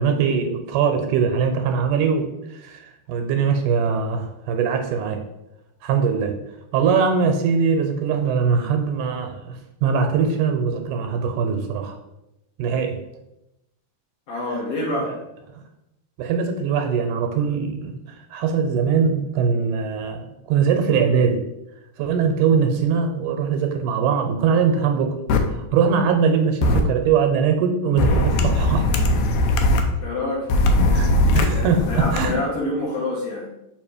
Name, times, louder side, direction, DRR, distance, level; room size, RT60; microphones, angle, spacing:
voice 1, 0.0-5.2 5.8-6.3 6.7-12.0 12.6-13.0 15.0-15.1 16.2-21.4 22.0-25.2 25.5-28.9 30.9-32.3, right 6 dB, 80° right, 5 dB, 2.1 m, -21 dB
voice 2, 14.3-15.2 30.0-31.2 31.5-33.5, left 2 dB, 60° left, -3 dB, 1.8 m, -27 dB
sound 1, 25.3-25.4 26.6-26.8 28.0-29.8 30.5-32.2, left 1 dB, 75° left, 1.9 m, -19 dB
6.9 x 2.9 x 5.1 m, 0.90 s
omnidirectional pair, 3.7 m